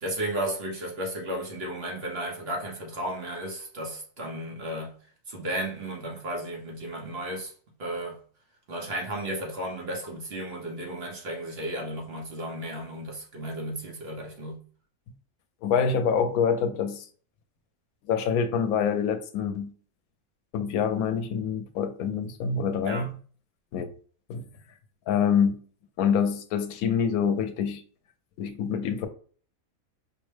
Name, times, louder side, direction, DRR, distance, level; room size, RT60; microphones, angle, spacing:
voice 1, 0.0-5.0 5.3-7.5 7.8-8.2 8.7-14.6 22.8-23.1, right 1 dB, 50° right, 1.0 m, -34 dB
voice 2, 15.6-17.1 18.1-19.7 20.5-23.2 23.7-23.9 24.3-24.5 25.1-25.6 26.0-27.8 28.4-29.1, left 6 dB, 90° left, 1.0 m, -26 dB
5.2 x 2.1 x 3.2 m
omnidirectional pair, 1.5 m